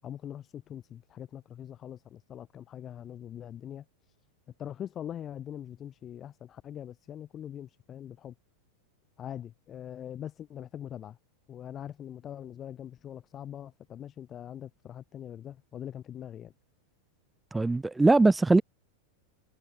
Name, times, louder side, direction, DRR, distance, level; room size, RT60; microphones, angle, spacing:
voice 1, 0.0-4.2 4.6-8.3 9.2-11.2 11.5-16.5, left 10 dB, 25° left, 5.7 m, -42 dB
voice 2, 17.5-18.6, right 3 dB, 10° right, 1.1 m, -21 dB
figure-of-eight pair, 90°, 0 cm